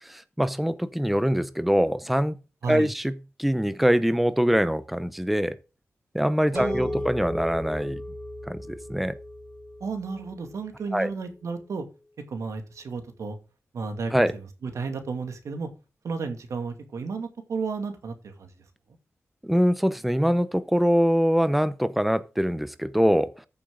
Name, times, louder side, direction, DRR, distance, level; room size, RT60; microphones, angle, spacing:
voice 1, 0.0-2.4 2.7-3.1 3.4-5.6 6.1-8.0 8.5-9.2 10.9-11.1 14.1-14.3 19.4-23.5, equal, ahead, 0.7 m, -23 dB
voice 2, 6.5-7.0 9.8-11.8 12.3-13.4 13.7-15.7 16.0-18.5, right 4 dB, 85° right, 2.3 m, -33 dB
sound 1, 6.6-11.1, left 2 dB, 15° left, 4.4 m, -36 dB
sound 2, 6.6-11.0, right 2 dB, 50° right, 1.8 m, -43 dB
14.0 x 7.2 x 3.8 m
wide cardioid pair, 120°, 5 cm